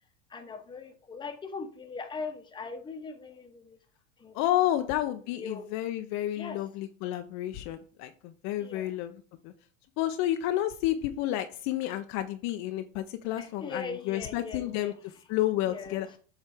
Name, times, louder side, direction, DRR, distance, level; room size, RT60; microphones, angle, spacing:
voice 1, 0.3-3.8 4.2-4.4 5.2-5.6 6.4-6.6 8.6-8.9 13.3-14.9 15.7-16.2, left 4 dB, 10° left, 6 dB, 0.8 m, -40 dB
voice 2, 4.3-9.1 9.4-9.5 10.0-14.9 15.3-16.1, left 13 dB, 45° left, 8 dB, 0.5 m, -30 dB
7.5 x 3.2 x 4.8 m, 0.41 s
supercardioid pair, 135°, 38 cm